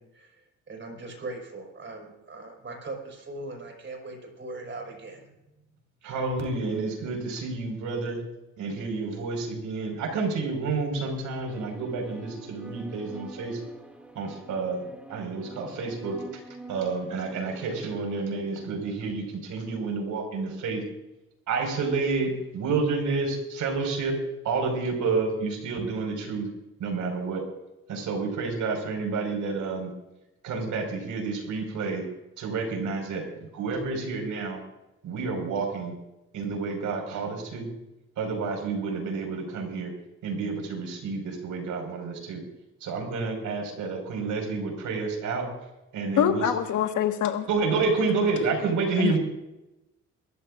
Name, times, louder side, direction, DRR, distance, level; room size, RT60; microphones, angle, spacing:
voice 1, 0.0-5.4, right 2 dB, 40° right, 2 dB, 5.5 m, -40 dB
voice 2, 6.0-8.2 8.6-13.6 14.2-16.2 16.7-20.8 21.5-24.2 24.4-26.5 26.8-27.4 27.9-29.9 30.4-32.1 32.4-34.6 35.0-36.0 36.3-37.7 38.2-39.9 40.2-42.4 42.8-45.5 45.9-46.4 47.5-49.2, right 4 dB, 75° right, 2 dB, 5.2 m, -29 dB
sound 1, 11.5-18.2, right 2 dB, 5° right, 2.3 m, -46 dB
voice 3, 46.2-47.5 49.0-49.2, left 9 dB, 75° left, 6 dB, 1.7 m, -24 dB
23.5 x 14.0 x 2.6 m, 0.96 s
cardioid pair, 90°, 30 cm